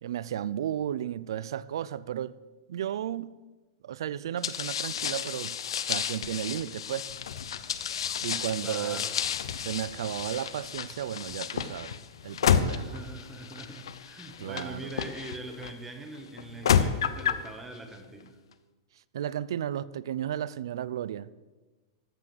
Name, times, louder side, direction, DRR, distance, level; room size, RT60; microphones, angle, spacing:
voice 1, 0.0-2.4 2.7-3.3 3.8-5.6 5.9-7.1 8.2-9.1 9.6-13.0 14.4-14.9 19.1-21.3, right 10 dB, 65° right, 0.5 m, -34 dB
sound 1, 4.4-15.7 16.4-17.5, left 8 dB, 90° left, 0.8 m, -31 dB
voice 2, 8.6-9.2 12.7-18.4, right 2 dB, 5° right, 1.0 m, -42 dB
13.5 x 6.1 x 7.9 m
supercardioid pair, 180°, 3 cm